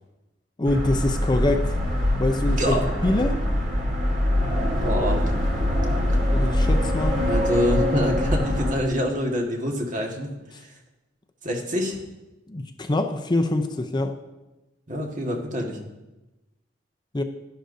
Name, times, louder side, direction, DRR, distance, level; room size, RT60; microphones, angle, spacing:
voice 1, 0.6-1.7 2.2-2.7 3.0-3.4 6.3-7.2 12.5-14.1 17.1-17.2, left 2 dB, 25° left, 6 dB, 0.5 m, -24 dB
sound 1, 0.6-8.7, left 1 dB, 85° right, 2.6 m, -23 dB
voice 2, 2.5-2.9 4.8-5.3 7.2-10.3 10.6-10.7 11.4-12.0 14.9-15.8, equal, 45° right, 1 dB, 1.6 m, -26 dB
11.5 x 11.5 x 2.7 m, 1.0 s
head